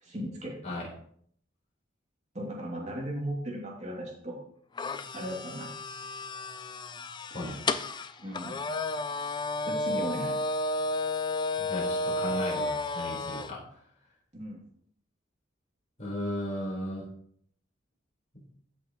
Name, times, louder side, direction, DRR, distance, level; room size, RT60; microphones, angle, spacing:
voice 1, 0.0-0.6 2.3-4.4 5.1-5.7 8.2-8.5 9.7-10.3 14.3-14.6, equal, 40° right, -2 dB, 2.7 m, -36 dB
sound 1, 4.8-13.5, left 2 dB, 25° left, 0.4 m, -32 dB
voice 2, 11.6-13.6 16.0-17.1 18.3-18.5, left 1 dB, 40° left, -4 dB, 4.5 m, -35 dB
14.0 x 6.4 x 3.1 m, 0.63 s
head